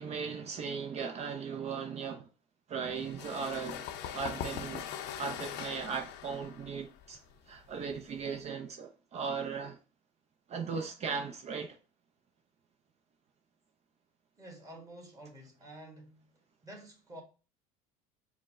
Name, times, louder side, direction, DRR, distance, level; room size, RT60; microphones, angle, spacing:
voice 1, 0.0-2.3 2.7-3.9 4.1-4.9 5.2-7.2 7.5-9.8 10.5-11.8, right 6 dB, 35° right, 0.5 m, -37 dB
sound 1, 2.9-8.4, left 9 dB, 70° left, 0.6 m, -42 dB
voice 2, 14.4-17.2, right 1 dB, 20° right, 1.5 m, -50 dB
4.5 x 2.1 x 3.5 m
supercardioid pair, 105°, 18 cm